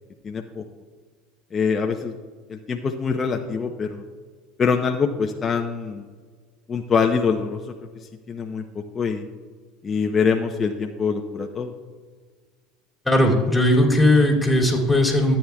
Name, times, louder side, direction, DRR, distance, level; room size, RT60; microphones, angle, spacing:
voice 1, 0.2-0.6 1.5-2.1 2.5-4.0 4.6-6.1 6.7-7.6 8.3-9.2 9.8-11.7, left 5 dB, 30° left, 3 dB, 0.7 m, -24 dB
voice 2, 13.0-15.4, left 1 dB, 5° left, -1 dB, 2.6 m, -18 dB
14.0 x 8.7 x 2.3 m, 1.5 s
supercardioid pair, 95°, 0 cm